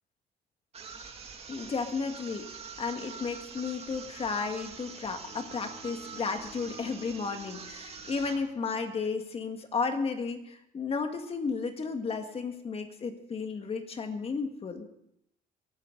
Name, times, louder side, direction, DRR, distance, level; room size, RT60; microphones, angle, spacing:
sound 1, 0.7-8.5, right 5 dB, 35° right, 2.4 m, -45 dB
voice 1, 1.5-14.9, left 4 dB, 35° left, 6 dB, 2.0 m, -33 dB
Bowed string instrument, 4.7-8.9, left 2 dB, 70° left, 7.2 m, -55 dB
22.5 x 12.5 x 4.0 m, 0.78 s
cardioid pair, 110°, 17 cm